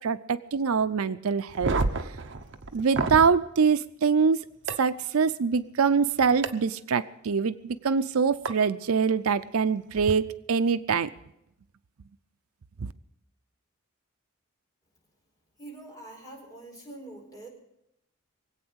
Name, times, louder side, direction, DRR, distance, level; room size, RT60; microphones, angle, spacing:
voice 1, 0.0-1.7 2.7-4.4 4.8-11.1 12.8-12.9, right 5 dB, 80° right, 13 dB, 0.5 m, -24 dB
sound 1, 1.5-3.3 4.7-4.8 6.4-6.5 8.5-8.6 9.9-10.1, right 3 dB, 60° right, 0.9 m, -29 dB
voice 2, 15.6-17.5, right 2 dB, 15° left, -1 dB, 4.5 m, -44 dB
22.5 x 8.6 x 6.3 m, 0.81 s
head